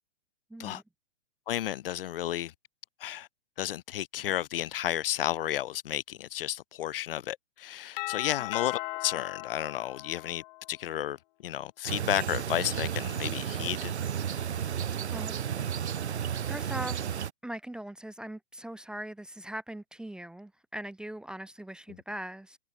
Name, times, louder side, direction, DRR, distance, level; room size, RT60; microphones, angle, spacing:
voice 1, 0.5-0.8 14.9-15.4 16.5-17.0 17.4-22.6, right 1 dB, ahead, 0.7 m, -40 dB
voice 2, 1.5-2.5 3.0-3.3 3.6-13.9, left 12 dB, 55° left, 0.8 m, -32 dB
Doorbell, 8.0-10.8, left 22 dB, 40° left, 2.0 m, -37 dB
sound 1, 11.9-17.3, right 8 dB, 75° right, 1.3 m, -32 dB
hypercardioid pair, 130°, 34 cm